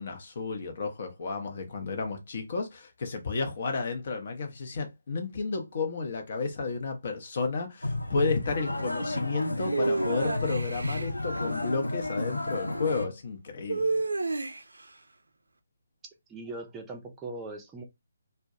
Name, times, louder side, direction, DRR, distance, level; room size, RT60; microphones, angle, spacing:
voice 1, 0.0-14.0, left 4 dB, 45° left, 0.7 m, -32 dB
sound 1, 7.8-13.1, left 1 dB, 85° left, 0.4 m, -32 dB
sound 2, 9.7-11.1 13.7-14.8, right 3 dB, 70° right, 0.4 m, -30 dB
voice 2, 16.3-17.8, right 2 dB, 10° right, 0.5 m, -40 dB
2.2 x 2.1 x 2.7 m
figure-of-eight pair, 145°, 0 cm